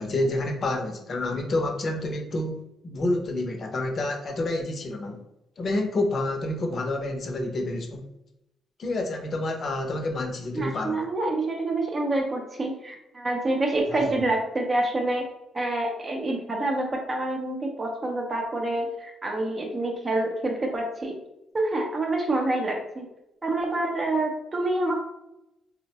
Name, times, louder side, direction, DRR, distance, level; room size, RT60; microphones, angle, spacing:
voice 1, 0.0-5.2 5.6-8.0 8.8-11.0 13.9-14.1, left 2 dB, 45° left, 2 dB, 0.6 m, -28 dB
voice 2, 10.6-15.3 15.5-21.2 21.5-23.0 23.4-25.1, right 2 dB, 30° right, 0 dB, 0.6 m, -27 dB
3.7 x 2.1 x 2.8 m, 0.87 s
cardioid pair, 90°, 0 cm